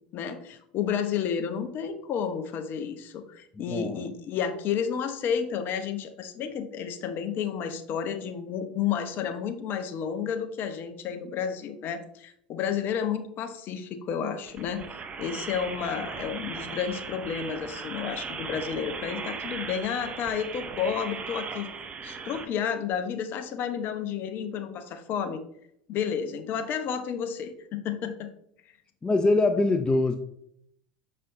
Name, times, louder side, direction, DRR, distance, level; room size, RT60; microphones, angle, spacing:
voice 1, 0.1-14.8 15.2-21.7 22.0-25.4 25.9-28.3, left 7 dB, 45° left, 8 dB, 0.8 m, -31 dB
voice 2, 3.7-4.1 29.0-30.2, left 2 dB, 20° left, 8 dB, 0.5 m, -23 dB
sound 1, 14.5-22.4, right 5 dB, 30° right, 0.7 m, -38 dB
6.8 x 5.4 x 2.6 m, 0.71 s
hypercardioid pair, 85°, 5 cm